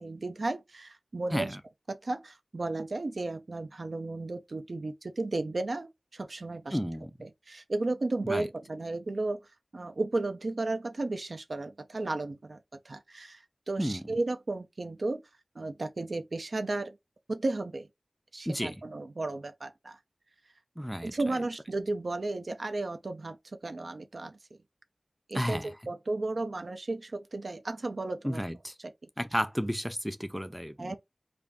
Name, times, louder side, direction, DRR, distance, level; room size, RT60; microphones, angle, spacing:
voice 1, 0.0-1.6 1.9-6.8 7.5-9.4 9.7-12.6 12.9-15.2 15.6-17.0 17.3-17.9 18.3-20.0 21.0-23.4 23.6-24.4 25.3-28.4 28.8-28.9 30.8-31.0, right 2 dB, 70° right, 0.4 m, -34 dB
voice 2, 1.3-1.6 6.7-7.1 8.3-8.5 13.8-14.0 18.5-18.8 20.8-21.1 25.3-25.7 28.2-28.7 29.2-31.0, equal, ahead, 0.4 m, -32 dB
2.5 x 2.2 x 3.4 m
wide cardioid pair, 55°, 0 cm